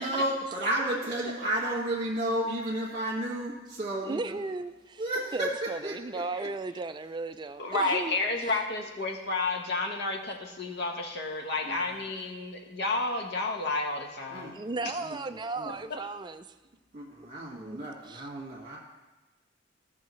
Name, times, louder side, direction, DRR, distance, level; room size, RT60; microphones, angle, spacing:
voice 1, 0.0-4.3 5.0-5.5 5.8-5.9 11.6-12.0 14.3-14.5 15.0-15.2 15.6-15.7 16.9-18.8, right 1 dB, 40° right, -5 dB, 1.8 m, -32 dB
voice 2, 4.0-5.1 5.3-8.5 14.5-16.5 17.5-18.3, right 3 dB, 25° right, 10 dB, 0.4 m, -36 dB
voice 3, 7.6-14.5, left 3 dB, 60° left, 3 dB, 1.1 m, -31 dB
15.5 x 6.4 x 3.1 m, 1.1 s
head